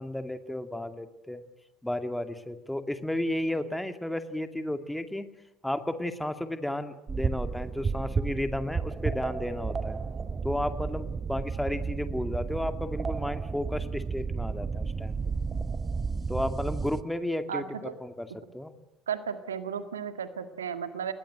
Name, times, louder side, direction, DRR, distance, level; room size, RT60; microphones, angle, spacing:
voice 1, 0.0-1.4 1.8-5.3 5.6-10.0 10.4-15.2 16.3-17.7 18.0-18.3 18.5-18.7, left 1 dB, 5° left, 8 dB, 2.4 m, -33 dB
sound 1, 7.1-17.0, right 5 dB, 25° right, 1.1 m, -32 dB
voice 2, 17.5-17.9 19.1-21.1, right 7 dB, 80° right, 10 dB, 1.9 m, -34 dB
30.0 x 21.0 x 7.9 m, 0.90 s
figure-of-eight pair, 60°, 0 cm